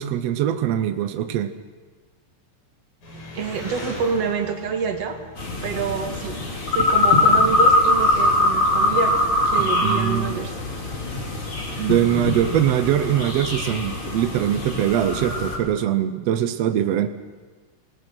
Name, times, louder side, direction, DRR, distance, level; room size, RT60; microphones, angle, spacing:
voice 1, 0.0-1.5 9.6-10.3 11.8-17.1, right 11 dB, 75° right, 8 dB, 1.6 m, -22 dB
Engine, 3.0-13.2, left 1 dB, 80° left, 7.2 m, -43 dB
voice 2, 3.3-5.2 5.6-6.4 6.7-10.6, right 6 dB, 55° right, 4 dB, 2.7 m, -27 dB
sound 1, 5.4-15.6, left 2 dB, 40° left, 3.9 m, -22 dB
26.5 x 19.0 x 6.2 m, 1.3 s
omnidirectional pair, 3.7 m